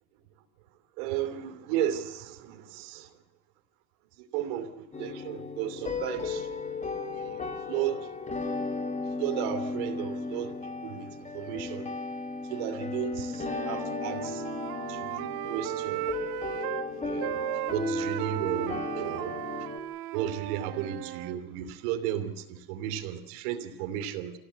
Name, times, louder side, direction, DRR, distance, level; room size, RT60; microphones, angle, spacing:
voice 1, 1.0-3.1 4.2-6.5 7.1-8.1 9.2-11.9 12.4-14.5 14.9-16.0 16.9-17.4 17.7-19.4 20.1-24.3, right 11 dB, 75° right, 8 dB, 3.0 m, -34 dB
sound 1, 4.9-19.8, left 3 dB, 15° left, 2.2 m, -35 dB
Wind instrument woodwind instrument, 13.4-16.9 17.2-21.4, right 15 dB, 55° right, 1.3 m, -36 dB
26.0 x 16.5 x 8.5 m, 0.96 s
supercardioid pair, 130°, 43 cm